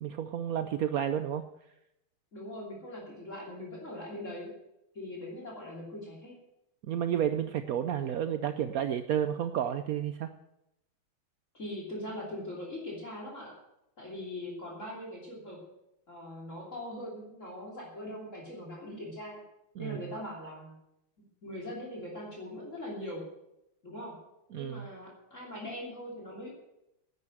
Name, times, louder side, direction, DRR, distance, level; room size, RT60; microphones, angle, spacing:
voice 1, 0.0-1.4 6.9-10.3 19.8-20.0 24.5-24.9, right 9 dB, 75° right, 9 dB, 0.8 m, -31 dB
voice 2, 2.3-4.5 4.9-6.4 11.5-13.6 14.0-15.6 16.1-19.4 19.8-20.7 21.4-23.2 23.8-24.1 24.5-26.5, left 1 dB, 35° left, -2 dB, 3.3 m, -41 dB
11.0 x 9.7 x 7.7 m, 0.84 s
omnidirectional pair, 2.3 m